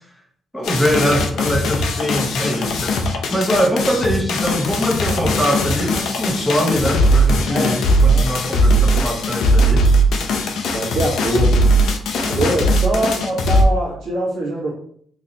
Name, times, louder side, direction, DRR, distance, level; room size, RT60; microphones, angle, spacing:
voice 1, 0.5-9.9 13.0-13.1, equal, ahead, 1 dB, 0.9 m, -22 dB
sound 1, 0.6-13.6, equal, 75° left, 0.5 m, -18 dB
voice 2, 7.4-7.8 8.0-8.3 10.7-11.7 12.2-14.7, right 1 dB, 80° right, -7 dB, 1.3 m, -23 dB
3.1 x 2.5 x 3.9 m, 0.62 s
cardioid pair, 95°, 0 cm